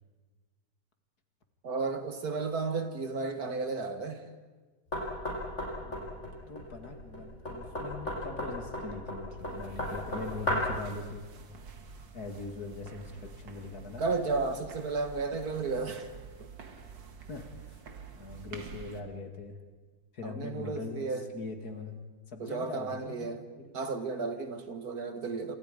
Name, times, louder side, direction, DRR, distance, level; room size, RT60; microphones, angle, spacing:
voice 1, 1.6-4.2 13.8-16.1 16.4-16.5 20.2-21.3 22.4-23.4 23.7-25.6, right 4 dB, 55° right, 8 dB, 2.0 m, -33 dB
Knock, 4.9-10.8, left 1 dB, 40° left, 7.1 m, -35 dB
voice 2, 5.8-11.3 12.1-14.0 17.3-17.8 18.1-19.6 20.1-21.0 21.3-22.0 22.3-23.7, left 3 dB, 60° left, 5 dB, 2.6 m, -41 dB
sound 1, 9.4-19.0, right 5 dB, 85° right, 2.5 m, -48 dB
29.0 x 27.0 x 5.2 m, 1.4 s
omnidirectional pair, 1.9 m